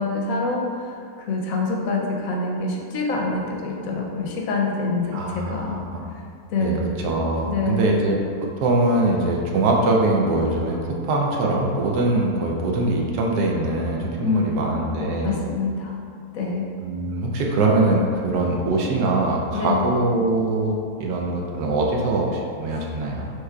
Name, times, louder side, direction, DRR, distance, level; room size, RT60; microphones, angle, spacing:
voice 1, 0.0-5.8 6.5-6.9 7.5-7.9 14.2-14.8 15.2-15.9 16.3-16.7 19.5-19.8 22.7-22.8, left 3 dB, 70° left, -1 dB, 0.9 m, -26 dB
voice 2, 5.1-6.0 6.6-8.2 8.6-15.4 16.8-23.3, right 2 dB, 90° right, -1 dB, 1.2 m, -22 dB
6.4 x 3.1 x 2.2 m, 2.4 s
omnidirectional pair, 1.6 m